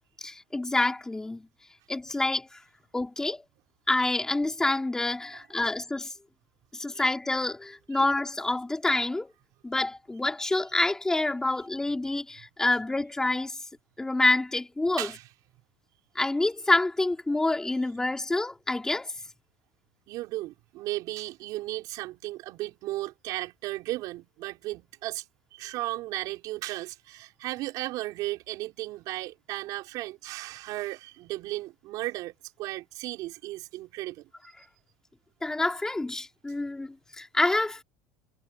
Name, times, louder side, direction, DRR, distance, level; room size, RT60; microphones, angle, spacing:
voice 1, 0.2-1.5 1.9-2.6 2.9-3.4 3.9-6.1 6.7-9.3 9.6-13.6 14.0-15.1 16.2-19.1 35.4-37.8, left 2 dB, 5° left, 4.0 m, -27 dB
voice 2, 15.0-15.3 20.1-25.2 25.5-34.3, right 17 dB, 50° right, 4.4 m, -35 dB
cardioid pair, 150°, 8 cm